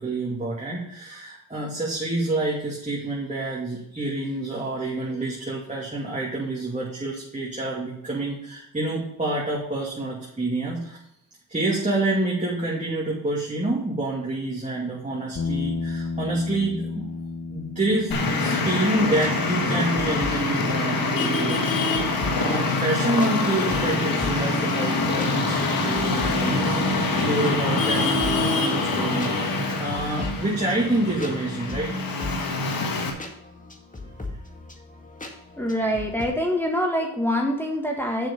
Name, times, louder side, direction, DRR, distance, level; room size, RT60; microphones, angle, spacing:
voice 1, 0.0-11.0 11.5-17.1 17.5-21.6 22.0-26.8 27.2-29.3 29.6-31.9, right 2 dB, 20° right, -4 dB, 2.4 m, -28 dB
sound 1, 15.4-23.7, left 4 dB, 50° left, 1.1 m, -35 dB
Traffic noise roadway noise, 18.1-33.1, left 3 dB, 85° left, 1.5 m, -25 dB
sound 2, 18.9-36.3, left 2 dB, 25° left, 1.9 m, -40 dB
voice 2, 35.6-38.3, equal, 5° left, 0 dB, 1.6 m, -25 dB
7.6 x 6.2 x 5.4 m, 0.78 s
cardioid pair, 65°, 34 cm